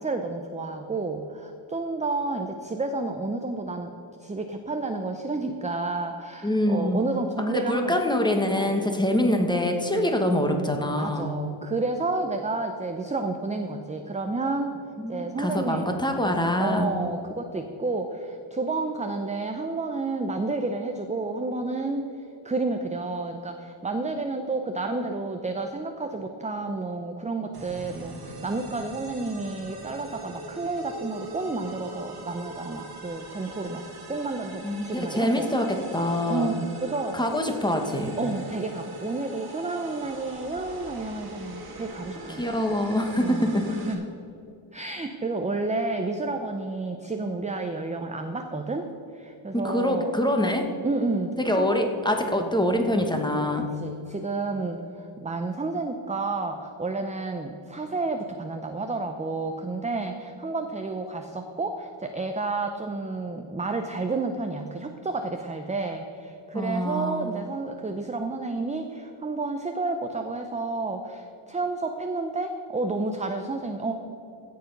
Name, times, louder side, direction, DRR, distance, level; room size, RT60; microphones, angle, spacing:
voice 1, 0.0-3.9 4.2-8.0 8.5-8.9 11.0-14.7 15.1-15.9 16.6-22.0 22.4-33.8 34.1-35.5 36.3-37.2 38.2-42.4 43.2-44.1 44.7-48.9 49.1-50.1 50.8-51.7 52.3-52.5 53.8-73.9, right 3 dB, 15° right, 5 dB, 0.6 m, -30 dB
voice 2, 6.4-7.0 7.5-11.3 15.0-16.9 34.6-35.7 35.9-36.5 37.1-38.1 42.3-43.7 49.5-50.7 51.4-53.7 66.5-67.3, left 1 dB, 10° left, 4 dB, 1.2 m, -25 dB
sound 1, 27.5-43.9, right 2 dB, 50° right, 1.9 m, -42 dB
15.5 x 6.8 x 5.3 m, 2.6 s
wide cardioid pair, 120°, 50 cm